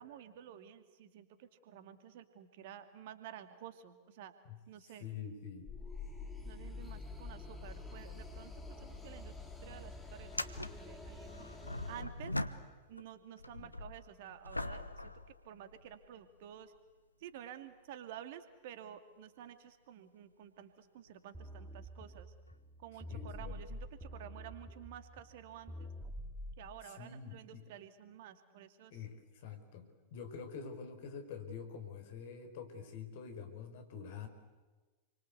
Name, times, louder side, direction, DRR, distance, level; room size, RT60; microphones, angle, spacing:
voice 1, 0.0-4.3 4.7-5.0 6.5-8.5 8.8-9.3 9.6-11.5 11.9-12.3 12.9-15.1 15.4-16.7 17.2-22.3 22.8-25.9 26.6-28.9, right 10 dB, 50° right, 9 dB, 2.4 m, -51 dB
voice 2, 4.8-5.7 13.6-13.7 23.1-23.8 26.8-27.6 28.9-34.3, left 6 dB, 55° left, 7 dB, 5.1 m, -46 dB
sound 1, 5.6-12.0, left 3 dB, 10° left, 4.5 m, -47 dB
sound 2, 8.8-9.0 9.3-9.4 10.2-13.1 13.4-16.1 16.8-16.9 21.0-21.1 22.5-22.6, left 1 dB, 85° left, 1.2 m, -42 dB
sound 3, 21.3-26.7, equal, 10° right, 2.5 m, -47 dB
29.0 x 24.5 x 8.3 m, 1.3 s
figure-of-eight pair, 90°, 0 cm